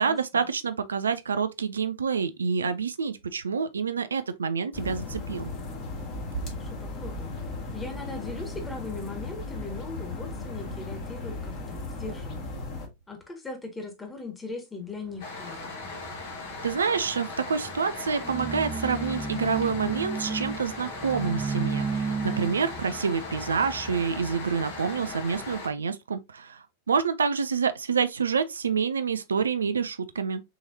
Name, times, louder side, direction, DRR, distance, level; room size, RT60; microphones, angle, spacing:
voice 1, 0.0-5.5 16.6-30.4, right 6 dB, 70° right, 0.4 m, -27 dB
sound 1, 4.7-12.9, left 2 dB, 40° left, 1.6 m, -36 dB
voice 2, 6.5-7.4 7.7-12.5 13.1-15.7, left 3 dB, 15° left, 1.6 m, -39 dB
sound 2, 15.1-25.6, right 4 dB, 15° right, 0.8 m, -35 dB
sound 3, 15.2-25.7, left 3 dB, 55° left, 1.3 m, -39 dB
6.3 x 3.1 x 2.6 m
figure-of-eight pair, 90°, 0 cm